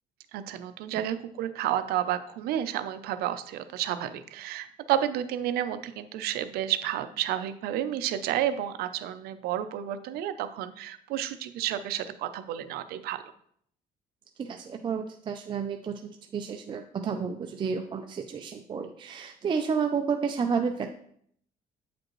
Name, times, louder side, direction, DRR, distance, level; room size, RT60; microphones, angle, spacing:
voice 1, 0.3-13.2, right 11 dB, 85° right, 12 dB, 0.5 m, -31 dB
voice 2, 14.4-20.9, right 6 dB, 30° right, 5 dB, 0.4 m, -31 dB
8.5 x 5.1 x 3.0 m, 0.66 s
cardioid pair, 125°, 16 cm